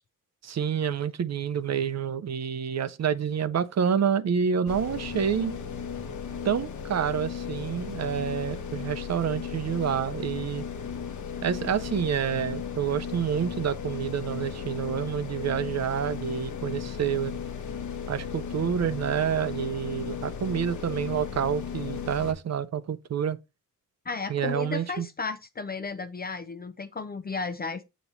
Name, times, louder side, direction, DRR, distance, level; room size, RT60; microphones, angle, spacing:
voice 1, 0.4-5.6 6.4-10.6 11.4-17.4 18.1-23.4 24.3-25.1, right 8 dB, 50° right, 0.6 m, -28 dB
sound 1, 4.7-22.3, left 7 dB, 60° left, 1.1 m, -36 dB
voice 2, 24.1-27.8, left 4 dB, 30° left, 0.5 m, -34 dB
8.4 x 3.0 x 5.5 m
wide cardioid pair, 140°, 33 cm